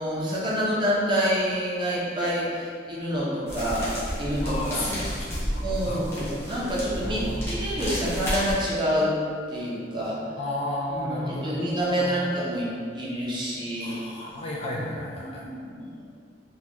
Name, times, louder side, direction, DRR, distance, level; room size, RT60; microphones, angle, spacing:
voice 1, 0.0-4.9 5.6-9.1 9.5-10.2 10.9-14.0 14.7-14.8 15.2-15.9, equal, 25° right, -6 dB, 0.6 m, -27 dB
sound 1, 3.5-8.5, equal, 15° left, 0.8 m, -31 dB
voice 2, 4.4-6.3 7.0-7.5 10.4-11.6 11.9-12.2 13.8-15.4, left 1 dB, 30° left, -4 dB, 0.3 m, -33 dB
3.9 x 2.3 x 2.9 m, 2.2 s
head